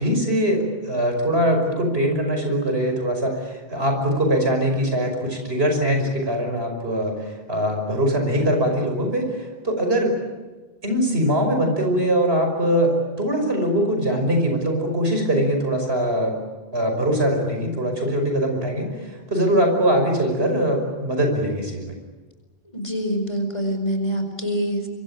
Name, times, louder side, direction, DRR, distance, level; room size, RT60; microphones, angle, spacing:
voice 1, 0.0-10.1 10.8-16.4 16.7-21.9, equal, 80° right, 4 dB, 6.0 m, -22 dB
voice 2, 22.7-24.9, equal, 30° left, 5 dB, 4.8 m, -25 dB
25.0 x 24.0 x 8.9 m, 1.2 s
omnidirectional pair, 1.0 m